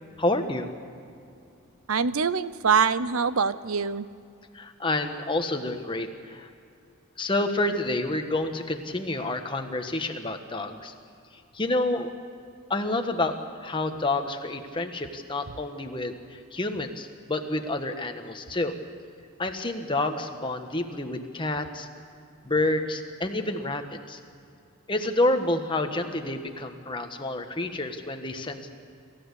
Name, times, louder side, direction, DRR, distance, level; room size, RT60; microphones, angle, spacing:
voice 1, 0.2-0.7 4.5-6.5 7.2-10.9 11.5-12.1 12.7-18.7 19.4-21.9 22.4-24.2 24.9-28.8, left 2 dB, 25° left, 5 dB, 1.4 m, -29 dB
voice 2, 1.9-4.1, right 6 dB, 85° right, 15 dB, 0.7 m, -24 dB
26.5 x 15.0 x 8.3 m, 2.5 s
head